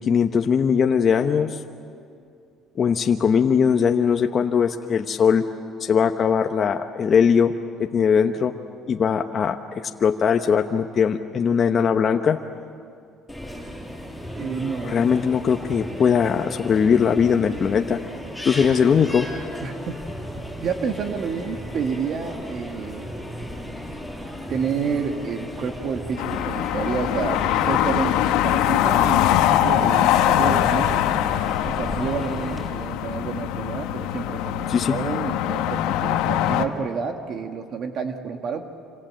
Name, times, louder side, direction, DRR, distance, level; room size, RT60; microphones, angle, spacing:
voice 1, 0.0-1.6 2.8-5.4 5.8-7.5 7.8-8.5 8.9-9.6 9.8-12.4 14.8-18.0 18.4-19.3 34.7-35.0, left 7 dB, 45° left, 4 dB, 1.1 m, -20 dB
sound 1, 13.3-32.7, equal, ahead, 7.2 m, -35 dB
voice 2, 14.3-15.0 19.6-20.0 20.6-23.1 24.5-31.0 31.6-38.6, right 6 dB, 55° right, 5 dB, 1.9 m, -29 dB
sound 2, 26.2-36.6, left 12 dB, 85° left, 1.3 m, -22 dB
27.0 x 27.0 x 7.8 m, 2.4 s
cardioid pair, 100°, 0 cm